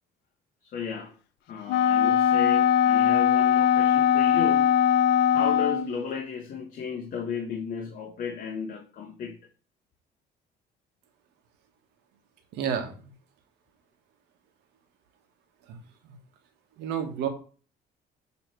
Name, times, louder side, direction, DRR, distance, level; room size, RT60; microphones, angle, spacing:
voice 1, 0.6-1.2 1.5-9.4, left 6 dB, 55° left, 1.1 m, -34 dB
Wind instrument woodwind instrument, 1.7-6.0, left 9 dB, 90° left, 0.5 m, -21 dB
voice 2, 12.5-12.9 15.7-15.8 16.8-17.3, right 8 dB, 90° right, 1.4 m, -29 dB
7.1 x 3.2 x 4.5 m
cardioid pair, 110°, 17 cm